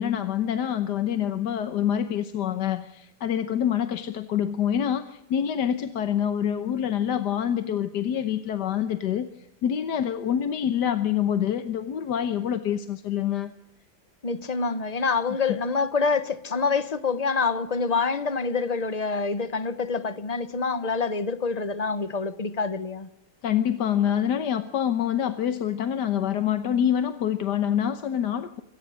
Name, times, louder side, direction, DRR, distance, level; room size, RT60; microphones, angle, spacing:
voice 1, 0.0-9.3 9.6-13.5 15.3-15.6 23.4-28.6, left 9 dB, 70° left, 1.6 m, -26 dB
voice 2, 14.2-23.1, left 4 dB, 35° left, 0.7 m, -26 dB
26.0 x 17.5 x 6.4 m
omnidirectional pair, 2.0 m